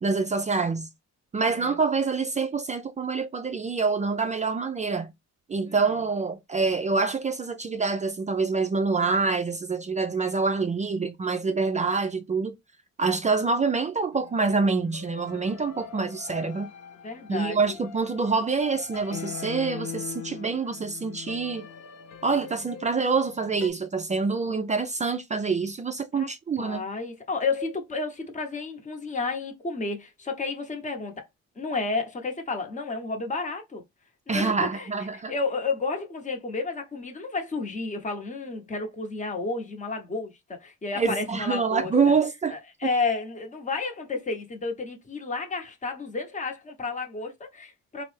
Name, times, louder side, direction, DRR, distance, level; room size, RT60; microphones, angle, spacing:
voice 1, 0.0-0.9 1.3-5.1 5.5-12.5 13.0-16.7 17.3-21.7 22.2-26.8 34.3-35.3 41.0-42.5, right 4 dB, 25° right, 0.4 m, -26 dB
voice 2, 1.3-1.8 5.7-5.9 17.0-17.7 26.1-26.3 26.6-31.2 31.6-33.8 34.3-34.9 35.3-42.1 42.5-48.0, left 3 dB, 25° left, 0.8 m, -31 dB
sound 1, 14.1-23.7, left 7 dB, 55° left, 0.7 m, -42 dB
3.2 x 2.0 x 3.2 m
cardioid pair, 90°, 30 cm